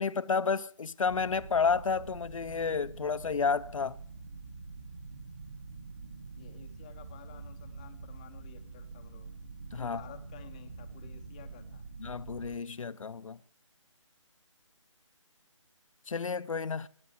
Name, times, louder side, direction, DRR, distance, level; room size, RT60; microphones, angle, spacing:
voice 1, 0.0-4.0 9.7-10.0 12.0-13.4 16.1-16.9, left 5 dB, 80° left, 0.6 m, -31 dB
sound 1, 1.0-12.6, right 4 dB, 70° right, 5.0 m, -46 dB
voice 2, 6.4-9.3 9.8-11.9, left 10 dB, 15° left, 0.6 m, -53 dB
19.0 x 8.2 x 8.6 m
figure-of-eight pair, 160°, 17 cm